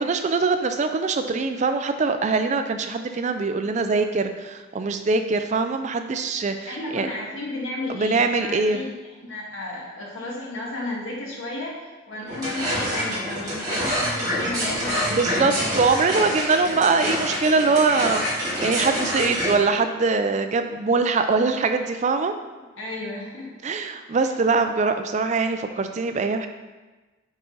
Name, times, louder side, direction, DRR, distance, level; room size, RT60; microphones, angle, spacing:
voice 1, 0.0-7.1 7.9-8.9 15.1-22.3 23.6-26.5, right 4 dB, 35° right, 7 dB, 0.4 m, -23 dB
voice 2, 6.7-15.8 22.8-23.5, left 2 dB, 75° left, -3 dB, 1.8 m, -33 dB
sound 1, 12.3-19.5, equal, 20° right, 2.3 m, -26 dB
8.8 x 3.9 x 3.8 m, 1.2 s
head